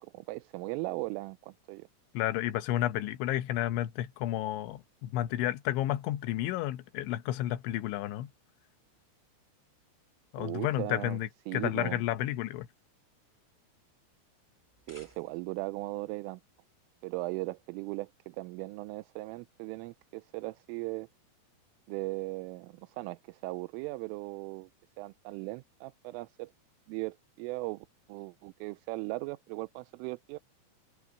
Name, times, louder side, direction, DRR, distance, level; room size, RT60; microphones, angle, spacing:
voice 1, 0.0-1.9 10.4-11.2 11.5-12.0 14.9-16.4 17.0-21.1 21.9-24.7 25.0-26.5 26.9-30.4, right 22 dB, 85° right, 3.1 m, -38 dB
voice 2, 2.1-8.3 10.3-12.7, left 13 dB, 75° left, 3.1 m, -31 dB
sound 1, 14.6-15.7, left 1 dB, 20° left, 0.5 m, -57 dB
omnidirectional pair, 5.9 m